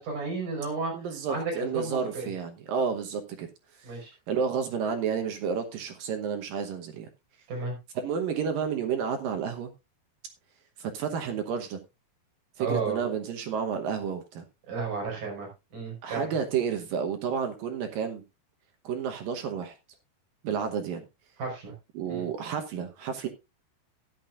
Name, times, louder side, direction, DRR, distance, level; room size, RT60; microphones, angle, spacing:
voice 1, 0.0-0.9 1.3-2.3 3.8-4.1 7.5-7.7 12.6-13.0 14.7-16.3 21.4-21.7 22.1-22.3, right 4 dB, 50° right, 6.3 m, -32 dB
voice 2, 0.9-3.5 4.3-7.1 8.0-9.7 10.8-11.8 12.6-14.4 16.0-18.2 18.8-19.8 20.4-21.0 21.9-23.3, right 6 dB, 70° right, 2.4 m, -31 dB
13.5 x 10.5 x 2.5 m
omnidirectional pair, 4.9 m